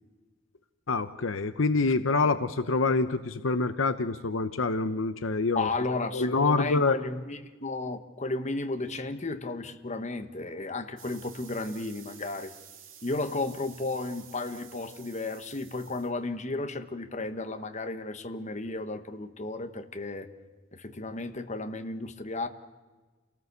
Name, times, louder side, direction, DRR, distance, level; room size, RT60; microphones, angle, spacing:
voice 1, 0.9-5.7 6.1-7.0, left 3 dB, 70° left, 11 dB, 0.8 m, -26 dB
voice 2, 5.5-12.5 13.0-20.3 20.7-22.5, left 2 dB, 35° left, 7 dB, 1.3 m, -33 dB
sound 1, 11.0-16.1, right 8 dB, 70° right, 2.7 m, -51 dB
28.5 x 18.5 x 6.8 m, 1.3 s
head